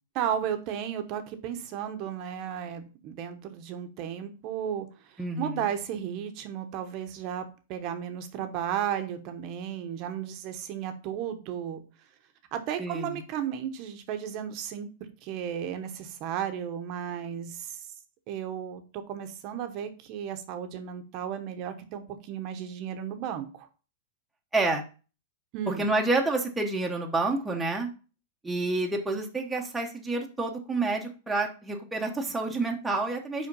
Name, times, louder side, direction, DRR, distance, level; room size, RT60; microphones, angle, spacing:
voice 1, 0.1-11.8 12.5-14.9 15.2-17.9 18.3-23.7 25.5-25.8, right 9 dB, 35° right, 8 dB, 0.8 m, -34 dB
voice 2, 5.2-5.7 12.8-13.2 24.5-24.8 25.7-27.9 28.4-33.5, right 2 dB, 5° right, 0 dB, 0.8 m, -29 dB
5.6 x 4.9 x 5.3 m, 0.35 s
supercardioid pair, 165°, 0 cm